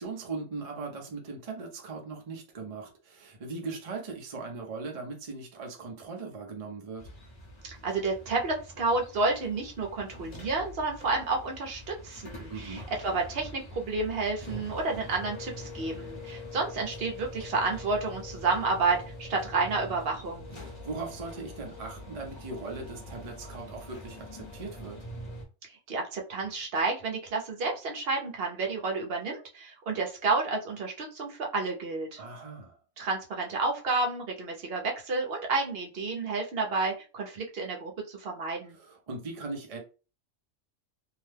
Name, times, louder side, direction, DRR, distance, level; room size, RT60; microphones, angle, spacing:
voice 1, 0.0-7.1 12.5-12.9 20.6-25.0 32.2-32.8 38.7-39.8, right 3 dB, 35° right, 0.6 m, -39 dB
sound 1, 7.0-25.4, left 1 dB, 30° left, 0.6 m, -44 dB
voice 2, 7.8-20.5 25.6-32.2 33.0-38.8, right 3 dB, 55° right, 1.0 m, -30 dB
2.7 x 2.2 x 3.3 m
omnidirectional pair, 1.3 m